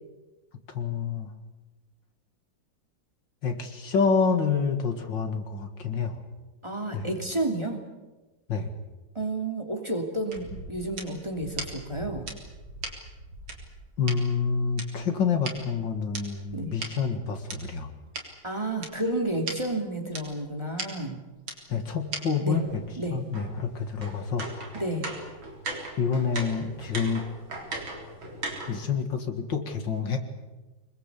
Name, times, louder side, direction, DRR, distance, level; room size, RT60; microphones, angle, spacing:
voice 1, 0.7-1.3 3.4-6.2 6.9-7.1 8.5-8.7 14.0-17.9 21.7-22.8 23.1-24.7 26.0-27.2 28.7-30.2, left 5 dB, 65° left, 6 dB, 2.6 m, -28 dB
voice 2, 6.6-7.8 9.1-12.3 16.5-16.7 18.4-21.2 22.4-22.6 23.0-23.2 24.7-25.1, right 1 dB, 15° right, 3 dB, 2.7 m, -31 dB
sound 1, 10.3-14.2 14.8-17.6 18.1-18.2 18.8-18.9 19.2-19.3 19.5-19.6 20.1-20.2 20.8-20.9 21.5-21.6 22.1-22.2 22.5-28.9, right 2 dB, 90° right, 4.4 m, -38 dB
25.5 x 21.0 x 8.3 m, 1.1 s
omnidirectional pair, 2.1 m